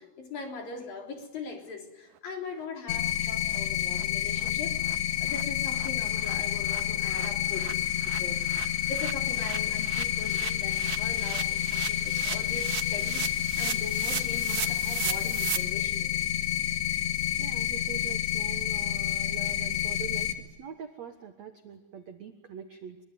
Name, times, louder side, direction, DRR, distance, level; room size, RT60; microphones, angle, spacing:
voice 1, 0.0-8.4 8.9-16.1, left 4 dB, 50° left, 2 dB, 5.0 m, -41 dB
sound 1, 2.6-2.7 3.0-3.1 3.5-3.6 3.9-4.0 4.4-4.5 4.8-5.0 5.3-5.4 5.7-15.6, right 11 dB, 65° right, 2.7 m, -38 dB
sound 2, 2.9-20.3, left 12 dB, 75° left, 4.2 m, -29 dB
voice 2, 17.4-23.0, right 8 dB, 80° right, 7 dB, 1.5 m, -43 dB
24.0 x 24.0 x 9.5 m, 1.1 s
omnidirectional pair, 5.3 m